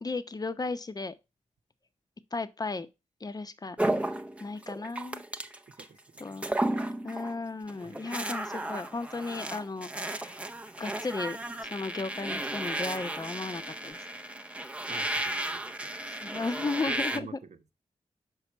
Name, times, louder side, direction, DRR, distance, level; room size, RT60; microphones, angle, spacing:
voice 1, 0.0-1.1 2.3-2.9 3.2-3.8 4.1-5.2 6.2-6.6 7.0-10.4 10.8-14.1 14.5-14.8 16.1-17.4, left 3 dB, 30° left, 0.7 m, -35 dB
sound 1, 3.8-5.9 6.2-7.4 7.7-17.2, right 1 dB, 10° right, 0.6 m, -34 dB
voice 2, 5.8-6.4 7.8-8.0 14.9-15.9 16.3-16.4 17.1-17.7, right 6 dB, 60° right, 0.9 m, -48 dB
6.1 x 4.9 x 4.4 m
cardioid pair, 60°, 13 cm